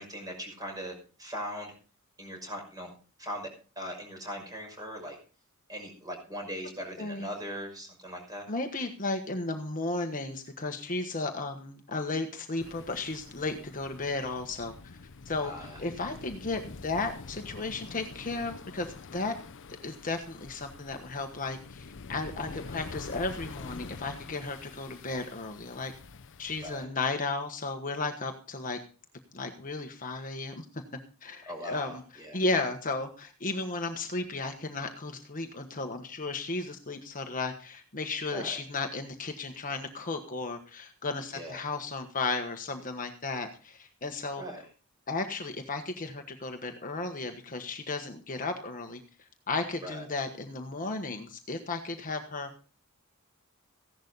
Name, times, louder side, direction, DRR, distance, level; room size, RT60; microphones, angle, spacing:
voice 1, 0.0-1.7 2.2-2.9 3.2-3.5 3.8-5.2 5.7-8.5 15.4-15.8 26.6-26.9 31.5-32.4 38.3-38.6 41.3-41.6 44.4-44.6 49.8-50.1, equal, 15° right, 2 dB, 5.9 m, -40 dB
voice 2, 7.0-7.3 8.5-15.0 15.2-15.5 15.8-19.4 19.8-25.9 26.4-28.8 29.3-30.8 31.2-32.0 32.3-44.4 45.1-49.0 49.5-52.5, left 3 dB, 40° left, 5 dB, 1.3 m, -34 dB
sound 1, 12.6-26.8, left 4 dB, 60° left, 0.7 m, -46 dB
16.0 x 11.5 x 4.0 m, 0.36 s
head